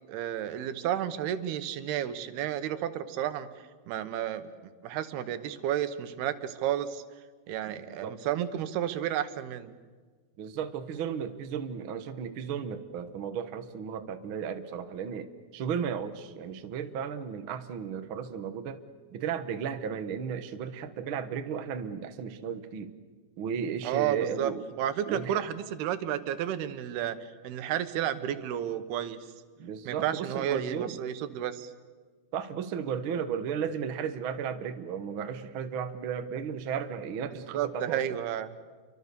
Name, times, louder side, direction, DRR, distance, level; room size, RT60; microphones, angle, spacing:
voice 1, 0.1-3.5 3.9-4.5 4.8-7.0 7.5-9.8 23.8-24.5 24.8-29.2 29.8-31.7 37.5-38.6, right 10 dB, 85° right, 11 dB, 3.2 m, -31 dB
voice 2, 7.7-8.2 10.4-18.8 19.1-22.9 23.4-24.6 25.1-25.4 29.6-31.0 32.3-38.0, right 7 dB, 70° right, 8 dB, 1.2 m, -34 dB
29.5 x 24.5 x 6.9 m, 1.4 s
omnidirectional pair, 4.5 m